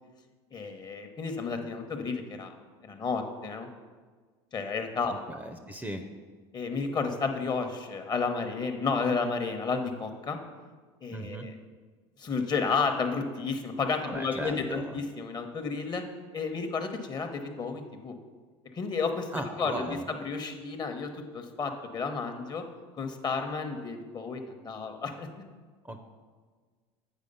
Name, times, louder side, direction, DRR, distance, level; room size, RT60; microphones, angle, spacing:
voice 1, 0.5-2.5 2.8-3.7 4.5-5.1 6.5-10.4 11.0-11.5 12.2-16.0 16.3-18.1 18.7-19.3 19.6-22.6 22.9-25.3, left 4 dB, 30° left, 6 dB, 1.0 m, -32 dB
voice 2, 5.1-6.0 11.1-11.5 14.0-15.0 19.3-20.0 25.8-26.0, right 1 dB, 10° right, 6 dB, 0.6 m, -37 dB
8.3 x 4.8 x 5.4 m, 1.5 s
supercardioid pair, 100°, 13 cm